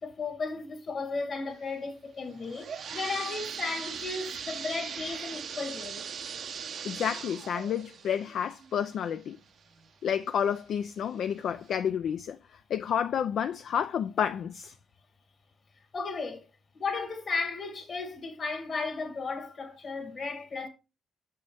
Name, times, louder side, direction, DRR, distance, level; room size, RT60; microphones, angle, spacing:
voice 1, 0.0-6.1 15.9-16.5 16.7-20.7, left 4 dB, 50° left, 2.0 m, -35 dB
sound 1, 2.3-9.9 10.4-10.5 11.2-11.3 11.7-11.8, right 7 dB, 65° right, 0.6 m, -40 dB
voice 2, 6.8-9.4 10.0-14.7, left 8 dB, 70° left, 0.3 m, -30 dB
7.0 x 5.5 x 3.4 m
cardioid pair, 70°, 0 cm